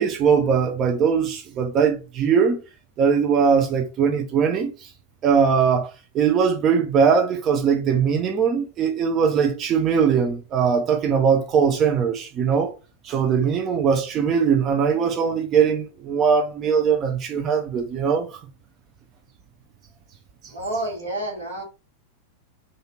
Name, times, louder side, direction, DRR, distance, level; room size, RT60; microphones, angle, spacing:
voice 1, 0.0-2.6 3.0-4.9 5.2-12.7 13.0-18.4, right 6 dB, 30° right, 0.4 m, -20 dB
voice 2, 20.5-21.6, right 1 dB, 80° right, 1.3 m, -29 dB
2.6 x 2.4 x 3.0 m
figure-of-eight pair, 90°, 0 cm